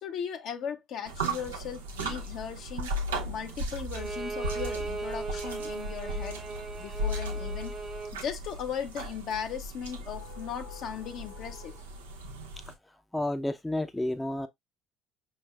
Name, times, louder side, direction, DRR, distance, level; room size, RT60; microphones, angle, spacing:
voice 1, 0.0-3.0 3.3-6.4 6.8-7.7 8.1-11.8, left 8 dB, 60° left, 0.9 m, -37 dB
sound 1, 1.1-12.7, right 1 dB, 90° right, 0.7 m, -36 dB
Bowed string instrument, 3.9-8.2, right 4 dB, 40° right, 0.7 m, -37 dB
voice 2, 13.1-14.5, left 1 dB, 10° left, 0.6 m, -30 dB
5.4 x 3.4 x 2.3 m
hypercardioid pair, 60°, 0 cm